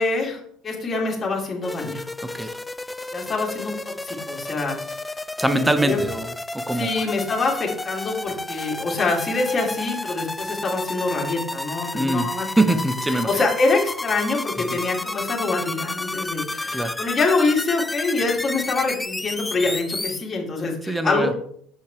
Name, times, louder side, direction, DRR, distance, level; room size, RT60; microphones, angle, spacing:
voice 1, 0.0-2.0 3.1-4.8 5.6-6.0 6.7-12.8 13.1-21.3, left 3 dB, 25° left, -2 dB, 2.3 m, -25 dB
sound 1, 1.6-20.2, left 2 dB, 10° left, 0.3 m, -31 dB
voice 2, 2.2-2.6 5.4-7.1 11.9-12.3 12.6-13.3 14.7-14.8 16.7-17.0 20.8-21.3, right 1 dB, 10° right, 10 dB, 0.8 m, -23 dB
6.7 x 5.6 x 3.2 m, 0.63 s
supercardioid pair, 90°, 0 cm